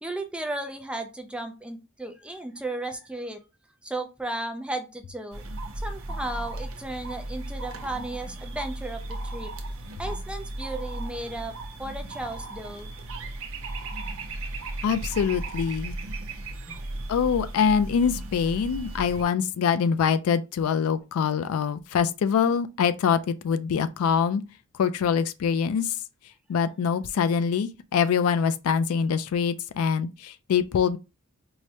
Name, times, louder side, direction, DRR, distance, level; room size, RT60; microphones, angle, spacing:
voice 1, 0.0-3.4 3.8-5.4 5.8-9.5 10.0-12.9 16.7-16.8, right 1 dB, 5° right, 0.4 m, -35 dB
sound 1, 5.3-19.2, right 2 dB, 65° right, 0.6 m, -36 dB
voice 2, 14.8-15.9 17.1-24.4 24.7-26.0 26.5-31.0, left 7 dB, 70° left, 0.3 m, -24 dB
4.7 x 2.1 x 2.8 m
head